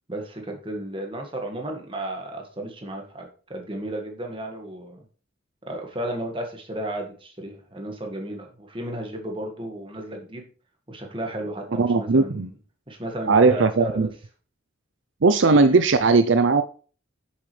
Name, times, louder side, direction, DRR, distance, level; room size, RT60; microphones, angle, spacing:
voice 1, 0.1-5.0 5.7-10.5 10.9-12.5 12.9-14.1, right 1 dB, 25° right, 2 dB, 1.8 m, -33 dB
voice 2, 11.8-12.5 13.3-14.1 15.2-16.6, right 3 dB, 70° right, 9 dB, 0.6 m, -18 dB
9.9 x 7.3 x 3.3 m, 0.39 s
head